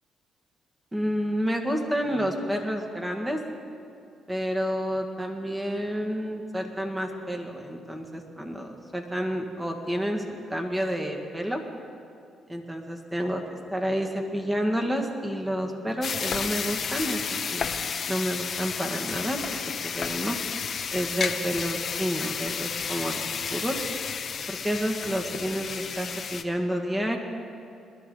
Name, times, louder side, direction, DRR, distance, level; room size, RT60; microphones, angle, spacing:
voice 1, 0.9-3.4 4.3-11.6 12.5-17.7 18.1-20.4 20.9-23.8 24.5-27.2, equal, 10° right, 3 dB, 1.8 m, -30 dB
sound 1, 16.0-26.4, left 6 dB, 50° left, 0.8 m, -32 dB
21.0 x 12.0 x 3.9 m, 2.6 s
cardioid pair, 90°, 0 cm